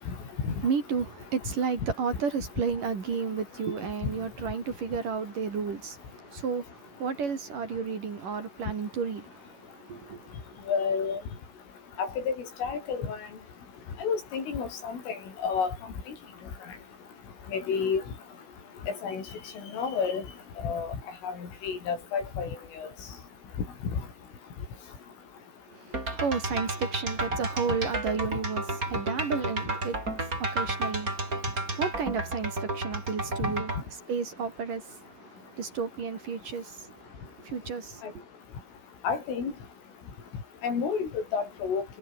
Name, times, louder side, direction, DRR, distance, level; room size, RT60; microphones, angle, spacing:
voice 1, 0.0-10.7 25.7-38.2, right 5 dB, 45° right, 4.7 m, -33 dB
voice 2, 10.7-11.2 12.0-12.4 12.6-13.2 14.0-15.7 17.5-18.0 18.9-19.2 19.7-20.2 20.6-21.0 21.2-21.4 21.6-22.5 22.8-22.9 33.4-33.5 39.0-39.5 40.6-41.9, left 6 dB, 90° left, 8.8 m, -30 dB
sound 1, 25.9-33.8, right 2 dB, 15° right, 6.7 m, -32 dB
omnidirectional pair, 5.6 m